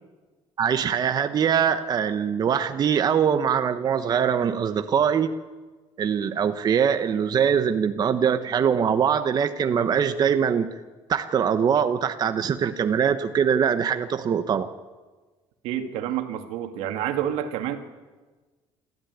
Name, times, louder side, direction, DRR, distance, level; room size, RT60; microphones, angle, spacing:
voice 1, 0.6-5.4 6.0-10.7 11.1-14.7, right 7 dB, 40° right, 8 dB, 1.1 m, -22 dB
voice 2, 15.6-17.8, right 10 dB, 85° right, 6 dB, 2.2 m, -28 dB
28.0 x 13.5 x 9.5 m, 1.3 s
cardioid pair, 120°, 10 cm